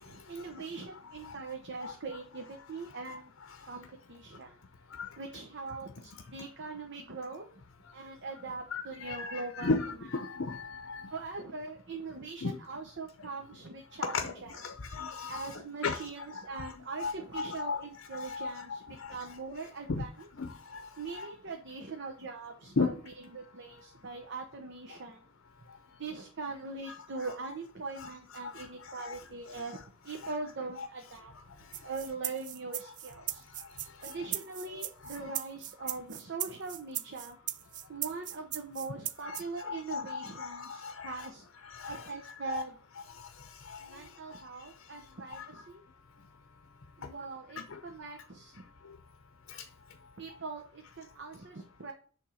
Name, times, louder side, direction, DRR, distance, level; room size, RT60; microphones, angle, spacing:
voice 1, 0.0-3.3 3.6-4.6 5.2-7.5 7.9-9.7 11.1-14.7 15.3-20.3 21.0-25.2 26.0-31.3 31.8-33.5 34.0-37.4 37.9-41.5 41.8-42.8 43.8-45.8 47.0-48.6 50.2-51.9, right 4 dB, 60° right, 4 dB, 0.9 m, -42 dB
voice 2, 8.7-10.6 10.9-11.0 12.4-12.5 14.0-14.3 14.9-15.5 15.8-16.0 17.0-17.8 18.1-18.8 19.9-20.0 20.4-20.5 21.2-21.3 22.8-22.9 29.0-29.1 30.8-30.9 34.7-34.8 39.2-39.4 39.7-41.1 41.8-42.0 42.5-42.6 45.3-45.4, left 4 dB, 65° left, 7 dB, 0.7 m, -34 dB
sound 1, 31.7-39.4, right 12 dB, 40° right, 0.4 m, -38 dB
8.8 x 3.5 x 6.3 m, 0.43 s
head